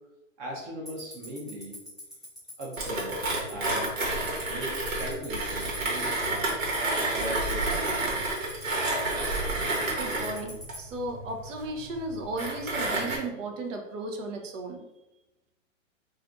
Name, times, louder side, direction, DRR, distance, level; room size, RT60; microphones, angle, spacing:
voice 1, 0.4-1.7 2.6-3.2 3.5-4.1 4.4-6.6 7.1-7.8, right 1 dB, 20° right, -1 dB, 0.5 m, -38 dB
Tick-tock, 0.9-10.7, equal, ahead, 1.0 m, -43 dB
Mechanisms, 2.8-13.2, right 2 dB, 85° right, 1.3 m, -30 dB
voice 2, 10.0-14.8, right 2 dB, 70° right, 2 dB, 0.7 m, -35 dB
3.2 x 2.5 x 2.5 m, 0.94 s
hypercardioid pair, 140°, 39 cm